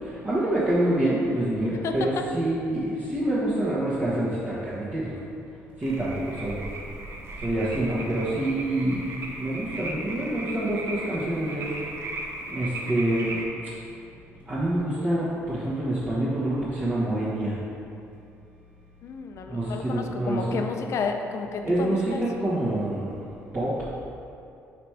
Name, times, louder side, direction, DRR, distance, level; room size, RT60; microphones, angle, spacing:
voice 1, 0.0-5.2 5.8-6.6 7.4-9.1 9.4-11.7 12.5-13.4 14.5-17.6 19.5-20.6 21.6-22.1 22.4-23.2 23.5-23.7, right 1 dB, 30° right, -11 dB, 1.3 m, -26 dB
voice 2, 1.8-2.3 19.0-22.2, left 5 dB, 60° left, 4 dB, 0.5 m, -31 dB
sound 1, 5.8-13.5, right 2 dB, 50° right, 0.7 m, -37 dB
5.0 x 4.5 x 4.8 m, 2.6 s
cardioid pair, 115°, 6 cm